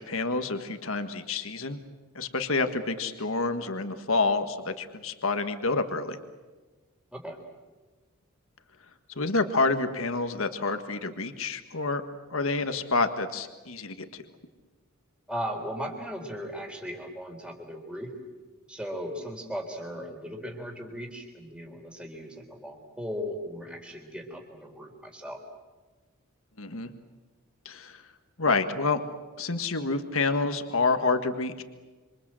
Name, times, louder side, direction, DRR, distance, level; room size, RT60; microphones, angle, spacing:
voice 1, 0.1-1.8 2.1-6.2 9.1-12.0 12.3-14.2 26.6-26.9 27.6-28.0 28.4-29.0 29.4-31.6, left 3 dB, 65° left, 8 dB, 1.7 m, -28 dB
voice 2, 15.3-18.1 18.7-25.4, equal, 5° right, 2 dB, 3.9 m, -37 dB
27.5 x 26.0 x 7.6 m, 1.3 s
head